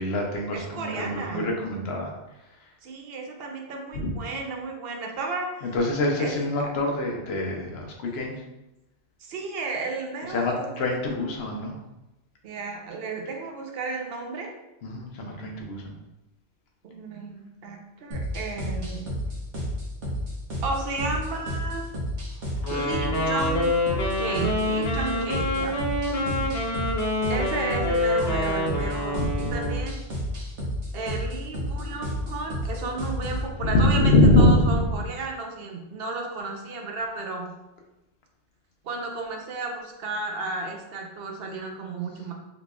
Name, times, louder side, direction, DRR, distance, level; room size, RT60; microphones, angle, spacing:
voice 1, 0.0-2.1 3.9-4.1 5.6-8.3 10.3-11.7 14.8-16.0 26.2-26.5 29.1-29.3 33.6-34.8, left 1 dB, 70° left, 0 dB, 0.9 m, -24 dB
voice 2, 0.5-1.5 2.8-5.7 6.2-6.3 9.2-10.7 12.4-14.5 16.8-19.1 20.6-22.0 22.7-23.7 24.2-25.7 27.3-30.0 30.9-37.5 38.8-42.3, right 3 dB, 65° right, 2 dB, 0.8 m, -33 dB
sound 1, 18.1-33.5, equal, 85° right, 1.2 m, -31 dB
Wind instrument woodwind instrument, 22.6-29.9, left 1 dB, 90° left, 1.2 m, -27 dB
3.9 x 3.0 x 2.3 m, 0.96 s
omnidirectional pair, 1.1 m